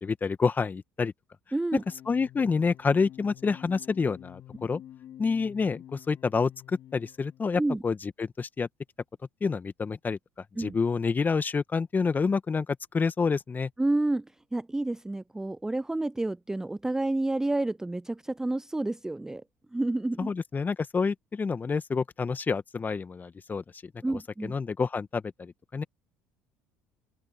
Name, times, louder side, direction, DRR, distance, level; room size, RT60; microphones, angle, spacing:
voice 1, 0.0-1.1 2.1-4.8 5.2-8.7 9.4-10.2 10.6-13.7 20.2-23.6 24.1-25.8, left 5 dB, 30° left, 1.7 m, -28 dB
voice 2, 1.5-1.8 7.6-7.8 10.6-10.8 13.8-14.3 14.5-19.4 19.7-20.3 24.0-24.5, right 2 dB, 10° right, 0.3 m, -29 dB
sound 1, 1.8-7.5, left 12 dB, 55° left, 2.0 m, -49 dB
open air
hypercardioid pair, 65°, 6 cm